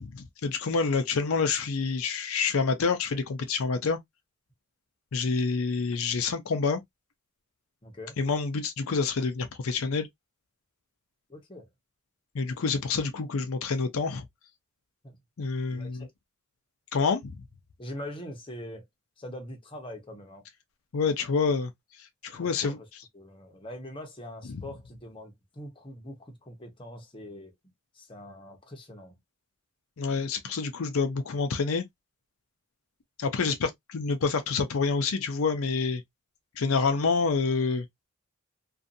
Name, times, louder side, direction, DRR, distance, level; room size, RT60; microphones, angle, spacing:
voice 1, 0.0-4.0 5.1-6.8 8.2-10.1 12.3-14.3 15.4-16.1 16.9-17.4 20.9-21.7 22.2-22.8 30.0-31.8 33.2-36.0 36.6-37.9, left 4 dB, 85° left, 0.5 m, -27 dB
voice 2, 7.8-8.2 11.3-11.7 15.0-15.2 15.7-16.1 17.8-18.9 19.2-20.4 22.4-22.9 23.1-27.5 27.9-29.2, left 1 dB, 25° left, 0.8 m, -43 dB
2.6 x 2.4 x 2.5 m
head